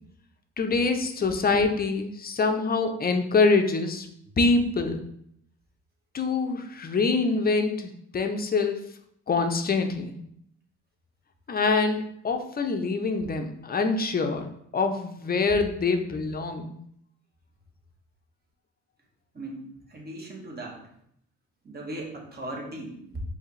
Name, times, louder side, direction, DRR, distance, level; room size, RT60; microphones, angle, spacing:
voice 1, 0.6-4.1 4.4-5.0 6.1-8.8 9.3-10.2 11.5-16.8, left 4 dB, 30° left, 6 dB, 0.6 m, -25 dB
voice 2, 19.3-19.6 19.9-20.8 21.6-23.2, right 1 dB, 30° right, 0 dB, 1.1 m, -38 dB
4.7 x 2.8 x 3.1 m, 0.71 s
cardioid pair, 90°, 30 cm